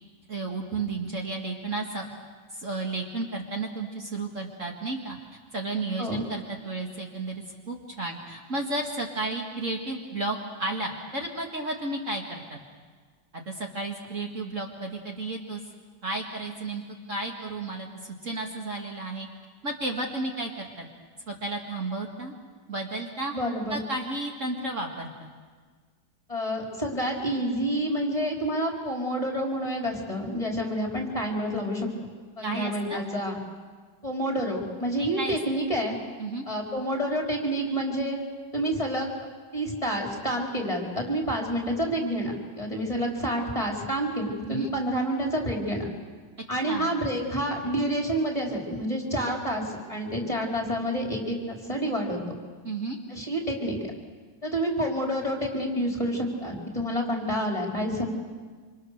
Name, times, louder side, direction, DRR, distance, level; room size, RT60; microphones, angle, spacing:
voice 1, 0.3-2.1 2.5-5.2 5.5-12.6 13.3-15.6 16.0-16.8 17.1-17.9 18.2-19.3 19.6-20.9 21.3-22.3 22.7-23.3 23.7-25.3 32.4-33.0 35.0-35.4 36.2-36.5 44.5-44.7 46.7-46.9 52.6-53.0, right 2 dB, 45° right, 1 dB, 2.4 m, -32 dB
voice 2, 23.3-23.8 26.3-31.9 32.4-33.4 34.0-36.0 36.5-38.2 38.5-39.1 39.5-45.8 46.5-52.2 53.1-53.8 54.4-58.1, equal, 20° left, 0 dB, 4.1 m, -28 dB
27.5 x 26.5 x 6.7 m, 1.5 s
omnidirectional pair, 1.9 m